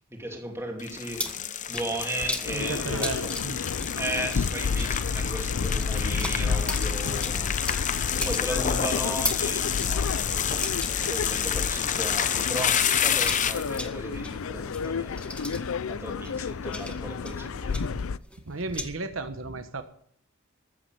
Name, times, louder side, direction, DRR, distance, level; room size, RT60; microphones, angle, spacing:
voice 1, 0.1-3.6 4.0-15.4 15.9-18.0, right 1 dB, 10° right, 2 dB, 2.8 m, -36 dB
sound 1, 0.8-13.8, left 8 dB, 35° left, 0.8 m, -29 dB
sound 2, 0.9-12.5 12.7-18.9, left 1 dB, 5° left, 1.4 m, -38 dB
sound 3, 2.4-18.2, left 5 dB, 70° left, 0.5 m, -31 dB
voice 2, 2.5-3.6 5.2-5.3 17.9-18.1 18.5-19.8, right 3 dB, 65° right, 8 dB, 1.2 m, -34 dB
14.5 x 8.6 x 7.7 m, 0.64 s
head